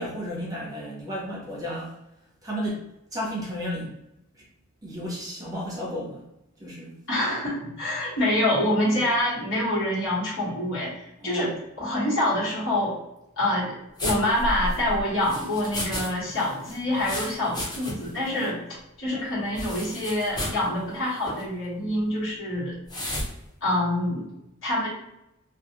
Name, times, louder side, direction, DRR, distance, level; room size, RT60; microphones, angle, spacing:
voice 1, 0.0-2.0 2.4-3.9 4.3-4.4 4.8-6.2 6.6-6.9 8.9-9.0 11.2-11.6 18.3-18.6, equal, 20° right, -4 dB, 0.8 m, -33 dB
voice 2, 7.1-11.5 11.8-13.0 13.4-18.6 19.0-22.7 23.6-24.3 24.6-24.9, left 1 dB, 65° left, -8 dB, 1.4 m, -26 dB
sound 1, 14.0-16.1 16.4-18.2 18.4-18.5 19.6-20.6 21.2-21.4 22.9-23.3, left 1 dB, 20° left, 0.7 m, -32 dB
2.4 x 2.4 x 2.8 m, 0.85 s
head